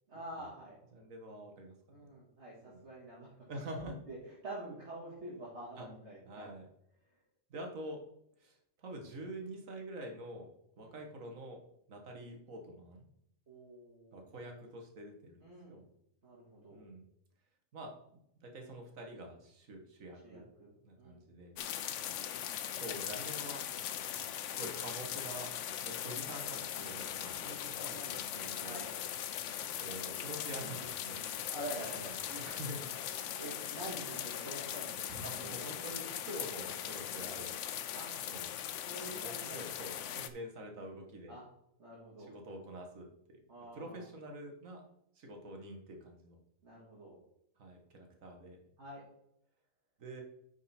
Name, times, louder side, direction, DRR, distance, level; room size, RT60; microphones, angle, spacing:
voice 1, 0.1-0.8 1.9-3.3 3.9-6.5 10.8-11.0 13.5-14.4 15.4-15.8 16.2-16.9 20.2-21.3 27.2-28.9 31.5-32.2 33.2-35.8 37.2-37.4 37.9-38.1 38.8-40.0 40.8-40.9 41.3-41.4 41.8-42.3 43.5-44.1 46.6-47.1 48.8-49.0, right 1 dB, 60° right, -6 dB, 2.2 m, -47 dB
voice 2, 0.9-2.1 2.6-2.8 3.5-4.0 5.8-5.9 6.3-6.7 7.5-8.0 8.4-10.5 10.8-11.6 11.9-13.1 14.1-15.4 15.7-15.9 16.7-17.1 17.7-17.9 18.4-20.5 20.8-21.5 22.7-23.6 24.5-25.5 25.8-27.5 27.9-28.8 29.8-31.2 32.0-32.9 35.2-37.5 38.2-38.5 39.0-41.4 42.2-43.4 43.7-44.8 45.2-46.4 47.6-48.6 50.0-50.2, right 1 dB, 85° right, 2 dB, 1.8 m, -46 dB
sound 1, 21.6-40.3, left 10 dB, 70° left, 0.9 m, -40 dB
9.6 x 4.8 x 4.3 m, 0.76 s
omnidirectional pair, 1.4 m